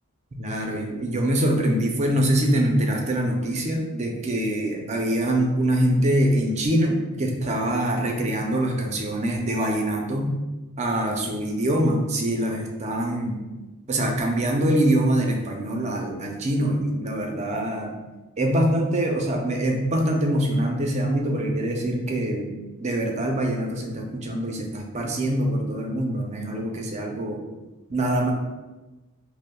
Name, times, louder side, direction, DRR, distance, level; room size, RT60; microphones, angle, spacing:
voice 1, 0.3-10.3 10.8-13.4 13.9-17.9 18.4-22.5 22.8-27.4 27.9-28.3, right 1 dB, 30° right, 1 dB, 0.5 m, -24 dB
5.2 x 2.0 x 2.2 m, 1.1 s
head